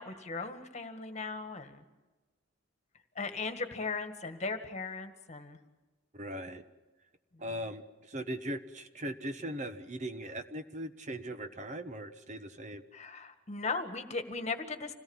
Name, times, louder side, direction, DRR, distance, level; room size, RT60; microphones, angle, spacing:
voice 1, 0.0-1.8 3.2-5.6 12.9-14.9, left 4 dB, 35° left, 8 dB, 1.8 m, -37 dB
voice 2, 6.1-6.6 7.4-12.8, right 1 dB, 35° right, 9 dB, 1.0 m, -39 dB
26.5 x 18.0 x 7.2 m, 1.2 s
head